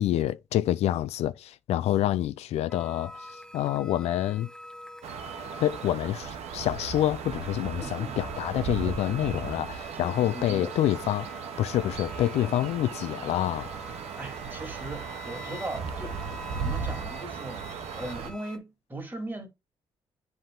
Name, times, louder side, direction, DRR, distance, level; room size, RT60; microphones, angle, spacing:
voice 1, 0.0-3.3 3.5-4.5 5.6-11.3 11.6-13.7, left 12 dB, 80° left, 0.4 m, -27 dB
sound 1, 2.7-18.6, left 1 dB, 5° left, 1.4 m, -47 dB
sound 2, 5.0-18.3, right 6 dB, 85° right, 1.0 m, -37 dB
voice 2, 7.7-8.2 8.8-9.2 9.9-10.7 12.3-12.5 14.2-19.5, right 1 dB, 20° right, 2.4 m, -39 dB
7.7 x 3.5 x 3.7 m
cardioid pair, 75°, 11 cm